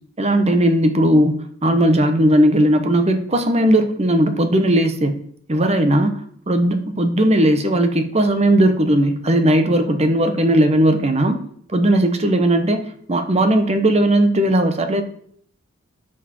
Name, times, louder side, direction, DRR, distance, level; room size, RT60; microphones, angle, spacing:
voice 1, 0.2-1.3 1.6-5.1 5.5-6.2 6.5-11.4 11.7-15.0, right 1 dB, 30° right, 7 dB, 1.0 m, -17 dB
13.5 x 5.0 x 4.4 m, 0.62 s
head